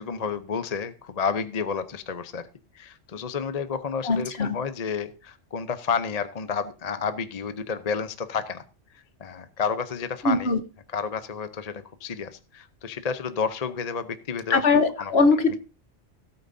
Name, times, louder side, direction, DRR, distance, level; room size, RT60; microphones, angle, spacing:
voice 1, 0.0-2.5 2.7-8.6 9.2-10.5 10.9-14.7 15.0-15.1 15.5-15.6, left 6 dB, 40° left, 11 dB, 0.7 m, -30 dB
voice 2, 4.0-4.6 10.2-10.6 14.5-15.6, left 3 dB, 55° left, 9 dB, 1.4 m, -21 dB
17.0 x 8.9 x 2.7 m, 0.31 s
omnidirectional pair, 1.3 m